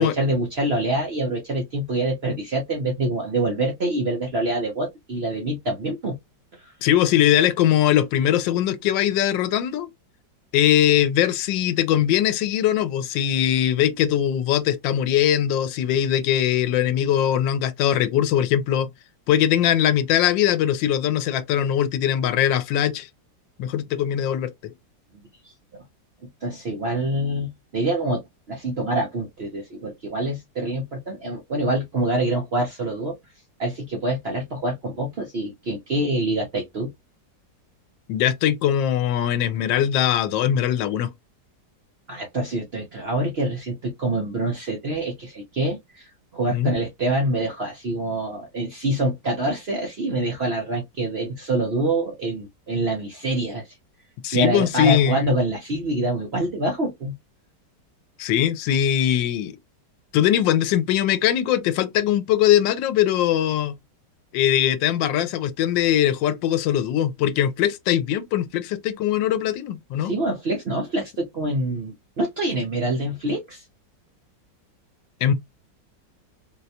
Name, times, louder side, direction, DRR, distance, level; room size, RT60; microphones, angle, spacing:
voice 1, 0.0-6.1 6.6-6.7 25.7-25.8 26.4-28.2 28.5-33.1 33.6-36.9 42.1-53.8 54.3-57.1 70.0-73.6, right 1 dB, 55° right, 0.7 m, -26 dB
voice 2, 6.8-9.9 10.5-18.9 19.3-23.1 23.6-24.7 38.1-41.1 46.5-46.7 54.2-55.2 58.2-59.6 60.1-63.8 64.3-70.1 75.2-75.3, left 11 dB, 85° left, 1.3 m, -21 dB
3.9 x 2.1 x 2.7 m
omnidirectional pair, 2.0 m